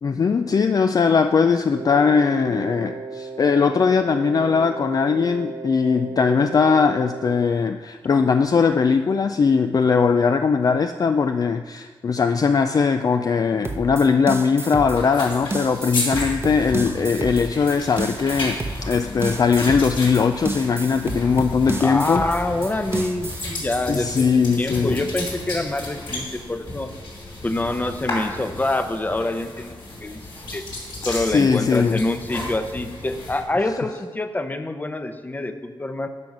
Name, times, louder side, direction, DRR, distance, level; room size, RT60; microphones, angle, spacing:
voice 1, 0.0-22.3 23.9-25.0 31.0-32.0, left 5 dB, 45° left, 8 dB, 0.3 m, -20 dB
Wind instrument woodwind instrument, 1.7-7.4, right 4 dB, 90° right, 1.8 m, -35 dB
sound 1, 13.6-23.5, right 2 dB, 25° right, 0.8 m, -30 dB
sound 2, 14.9-33.4, left 2 dB, 65° left, 2.9 m, -33 dB
voice 2, 21.8-26.9 27.4-29.8 30.0-30.2 30.5-30.6 31.0-36.1, left 2 dB, 20° left, 9 dB, 0.7 m, -26 dB
10.5 x 6.0 x 5.4 m, 1.4 s
wide cardioid pair, 105°, 9 cm